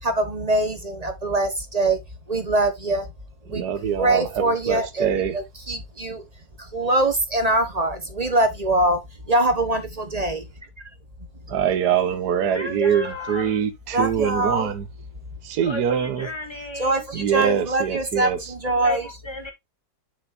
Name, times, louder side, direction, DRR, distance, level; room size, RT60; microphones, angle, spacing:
voice 1, 0.0-2.0 2.3-3.1 3.5-3.6 4.0-6.2 6.6-10.4 13.9-14.7 16.8-19.1, right 2 dB, 25° right, 1.0 m, -23 dB
voice 2, 3.5-5.3 11.5-14.9 15.4-16.3 17.1-18.5, right 8 dB, 65° right, 1.5 m, -24 dB
voice 3, 12.5-13.6 15.6-17.0 18.8-19.5, left 2 dB, 15° left, 1.7 m, -34 dB
7.2 x 6.6 x 2.6 m
omnidirectional pair, 2.0 m